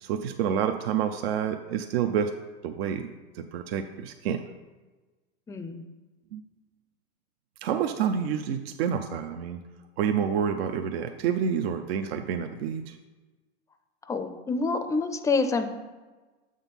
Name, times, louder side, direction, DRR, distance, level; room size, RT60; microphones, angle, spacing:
voice 1, 0.0-2.3 2.6-3.1 3.3-4.4 6.3-6.4 7.6-9.6 10.0-13.0, right 8 dB, 75° right, 6 dB, 0.6 m, -28 dB
voice 2, 5.5-5.8 14.1-15.7, left 4 dB, 10° left, 8 dB, 0.4 m, -27 dB
7.1 x 3.7 x 5.8 m, 1.2 s
supercardioid pair, 125°, 31 cm